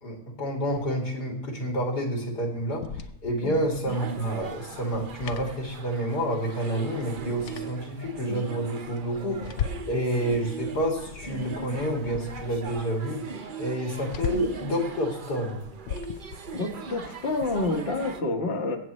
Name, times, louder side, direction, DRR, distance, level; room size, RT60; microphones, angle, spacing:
voice 1, 0.0-2.8 3.2-9.4 9.9-13.2 13.6-15.6, right 1 dB, 80° left, 0 dB, 3.1 m, -29 dB
sound 1, 2.6-6.3 6.5-6.6 7.0-8.2 8.7-10.0 10.3-12.9 13.2-13.3 13.6-14.7 15.3-17.8, left 7 dB, 60° left, 0.8 m, -39 dB
sound 2, 3.9-18.2, right 5 dB, 45° right, 0.7 m, -39 dB
voice 2, 16.5-18.8, left 2 dB, 40° left, 2 dB, 1.4 m, -28 dB
23.5 x 8.2 x 3.1 m, 0.80 s
omnidirectional pair, 1.7 m